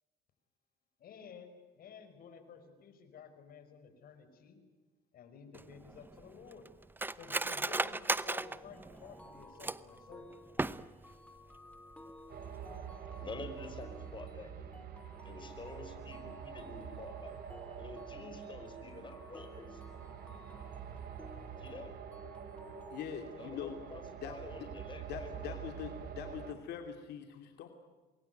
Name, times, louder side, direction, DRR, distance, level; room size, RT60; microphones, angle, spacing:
voice 1, 1.0-4.6 5.1-6.7 7.2-10.3, left 6 dB, 60° left, 10 dB, 5.3 m, -53 dB
Cutlery silverware, 5.5-10.0 10.5-11.2 11.5-11.6 11.9-12.3 12.6-12.8, right 2 dB, 10° right, 0.8 m, -36 dB
sound 1, 8.3-23.0, left 1 dB, 5° left, 3.3 m, -56 dB
sound 2, 12.3-26.5, right 8 dB, 65° right, 4.2 m, -46 dB
voice 2, 13.2-14.5 15.2-17.4 17.8-19.8 21.6-21.9 23.4-25.6, left 3 dB, 30° left, 7 dB, 5.4 m, -48 dB
voice 3, 22.9-23.8 24.2-24.7 25.0-27.7, left 8 dB, 75° left, 5 dB, 2.8 m, -43 dB
28.0 x 21.5 x 9.4 m, 1.3 s
cardioid pair, 110°, 17 cm